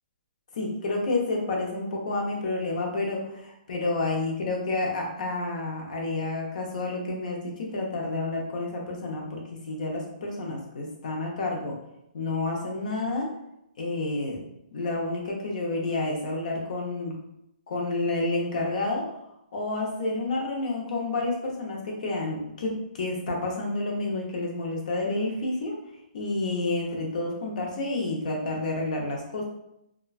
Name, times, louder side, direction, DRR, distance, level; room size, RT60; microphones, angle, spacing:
voice 1, 0.5-11.7 12.1-13.3 13.8-14.4 14.7-17.1 17.7-19.1 19.5-25.8 26.1-29.4, left 2 dB, 50° left, -1 dB, 0.7 m, -29 dB
2.9 x 2.3 x 2.3 m, 0.82 s
hypercardioid pair, 170°, 5 cm